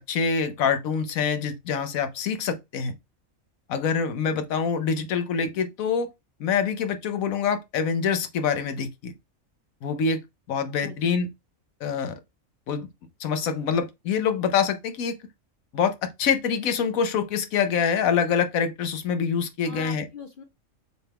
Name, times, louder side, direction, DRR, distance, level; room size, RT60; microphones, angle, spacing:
voice 1, 0.1-2.9 3.7-6.1 6.4-9.1 9.8-10.2 10.5-11.3 11.8-12.1 12.7-12.9 13.2-15.2 15.7-20.0, left 6 dB, 75° left, 1.2 m, -25 dB
voice 2, 10.8-11.2 19.6-20.4, left 5 dB, 50° left, 0.7 m, -41 dB
6.6 x 2.2 x 3.4 m
omnidirectional pair, 1.5 m